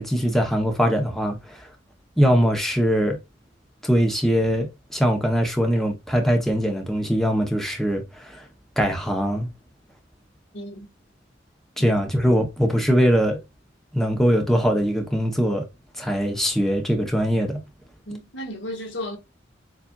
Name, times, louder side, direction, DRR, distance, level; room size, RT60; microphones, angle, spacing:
voice 1, 0.0-1.7 2.2-3.2 3.8-8.5 8.8-9.5 11.8-13.4 13.9-15.6 16.0-17.6, equal, ahead, 0.8 m, -22 dB
voice 2, 10.5-10.9 11.8-11.9 18.0-19.2, equal, 75° left, 1.4 m, -34 dB
6.8 x 2.5 x 2.3 m
head